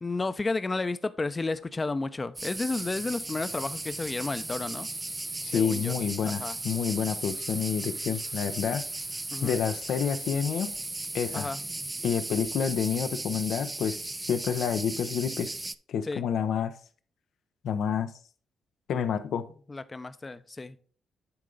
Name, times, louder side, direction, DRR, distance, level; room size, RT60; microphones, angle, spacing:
voice 1, 0.0-4.9 5.5-5.9 6.3-6.6 9.3-9.6 11.3-11.6 16.1-16.3 19.7-20.8, left 3 dB, 30° left, 13 dB, 0.6 m, -32 dB
sound 1, 2.4-15.8, right 2 dB, 20° right, 0.4 m, -36 dB
voice 2, 5.4-8.9 9.4-10.7 11.1-11.5 12.0-15.5 15.9-16.7 17.6-18.1 18.9-19.4, left 7 dB, 75° left, 11 dB, 0.6 m, -28 dB
9.8 x 3.8 x 3.8 m, 0.43 s
supercardioid pair, 60°, 0 cm